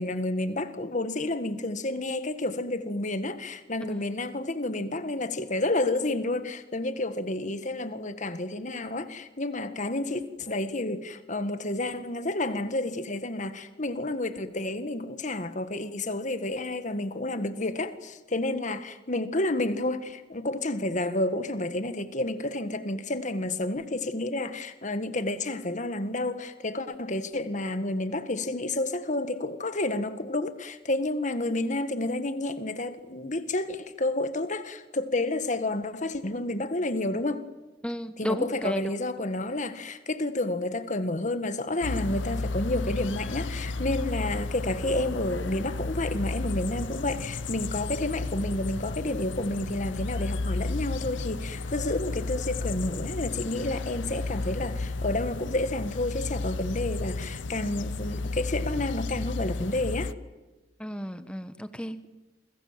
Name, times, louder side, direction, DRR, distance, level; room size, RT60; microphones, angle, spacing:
voice 1, 0.0-37.5 38.2-60.1, left 2 dB, 40° left, 1.8 m, -30 dB
voice 2, 37.8-39.0 60.8-62.1, equal, 5° left, 1.3 m, -33 dB
sound 1, 41.8-60.1, left 3 dB, 80° left, 0.8 m, -33 dB
28.0 x 25.5 x 7.6 m
head